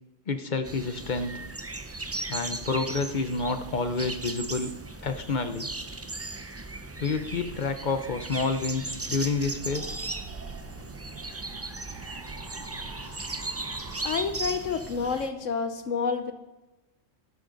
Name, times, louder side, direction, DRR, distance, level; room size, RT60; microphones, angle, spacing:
voice 1, 0.3-1.4 2.3-4.7 5.0-5.7 7.0-9.9, left 4 dB, 45° left, 9 dB, 0.8 m, -29 dB
sound 1, 0.6-15.3, right 2 dB, 25° right, 0.3 m, -37 dB
sound 2, 9.4-14.8, right 3 dB, 65° right, 1.9 m, -45 dB
voice 2, 14.0-16.3, left 5 dB, 75° left, 9 dB, 1.2 m, -29 dB
12.0 x 11.5 x 3.9 m, 1.1 s
omnidirectional pair, 1.3 m